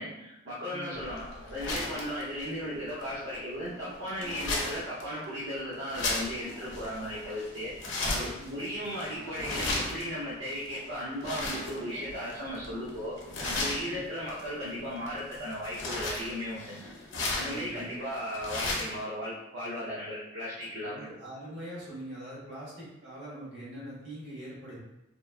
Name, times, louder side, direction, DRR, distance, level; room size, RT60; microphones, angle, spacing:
voice 1, 0.0-13.2 13.4-16.8 17.3-21.1, equal, 85° right, -8 dB, 0.6 m, -36 dB
voice 2, 0.7-1.0 8.3-8.6 13.8-14.0 17.4-17.8 20.8-24.8, right 1 dB, 65° right, -8 dB, 1.3 m, -43 dB
sound 1, 0.9-19.0, left 2 dB, 85° left, 0.6 m, -37 dB
2.9 x 2.2 x 2.3 m, 0.92 s
head